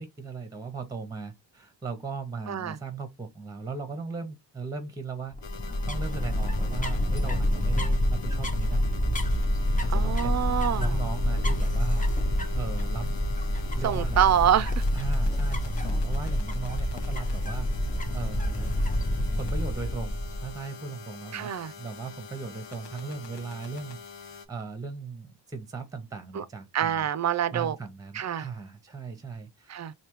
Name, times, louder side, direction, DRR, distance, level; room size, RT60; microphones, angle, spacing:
voice 1, 0.0-5.3 5.9-8.8 9.8-12.1 12.5-13.1 13.8-14.3 14.9-17.7 18.1-18.9 19.4-24.0 24.3-27.0 27.5-29.8, right 4 dB, 10° right, 0.8 m, -38 dB
voice 2, 2.5-2.8 9.9-11.0 13.8-14.8 21.3-21.7 26.3-26.4 26.7-27.8 28.1-28.5 29.7-29.9, right 9 dB, 40° right, 0.4 m, -26 dB
sound 1, 5.3-20.6, left 1 dB, 20° left, 0.6 m, -27 dB
sound 2, 5.4-24.5, left 6 dB, 85° left, 0.9 m, -45 dB
3.3 x 2.8 x 3.0 m
wide cardioid pair, 100°, 42 cm